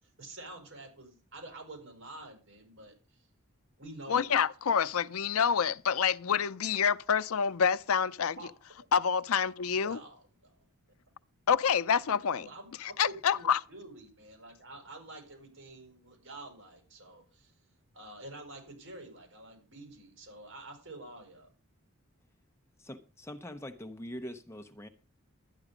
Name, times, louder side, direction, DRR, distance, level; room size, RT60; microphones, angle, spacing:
voice 1, 0.0-3.3 3.8-4.3 8.4-8.5 8.8-8.9 9.9-10.7 12.3-17.5 17.9-21.5, right 2 dB, 65° right, 6.1 m, -48 dB
voice 2, 4.1-8.4 8.9-10.0 11.5-12.4 12.8-13.6, left 7 dB, 80° left, 0.5 m, -27 dB
voice 3, 22.8-24.9, equal, 10° left, 0.7 m, -43 dB
12.0 x 9.9 x 5.0 m
head